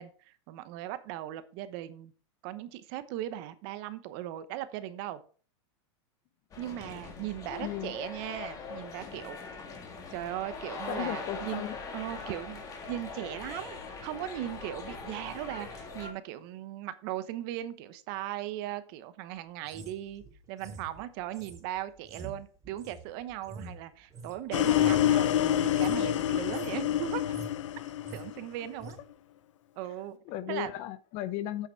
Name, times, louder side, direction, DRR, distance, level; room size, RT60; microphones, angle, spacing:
voice 1, 0.0-2.1 2.4-5.2 6.6-9.4 10.1-11.6 11.9-20.2 20.5-27.3 28.1-29.0 29.8-30.2 30.5-30.7, right 13 dB, 50° right, 0.9 m, -38 dB
sound 1, 6.5-16.1, left 4 dB, 20° left, 1.7 m, -42 dB
voice 2, 7.6-7.9 10.9-11.8 30.3-31.7, left 12 dB, 40° left, 0.6 m, -35 dB
sound 2, 19.6-24.4 24.7-25.1 25.6-26.0 26.3-26.8 27.1-27.6 27.9-28.3 28.8-29.0, right 3 dB, 20° right, 1.7 m, -46 dB
sound 3, 24.5-28.6, left 11 dB, 85° left, 0.5 m, -27 dB
8.4 x 5.8 x 4.5 m
supercardioid pair, 145°, 15 cm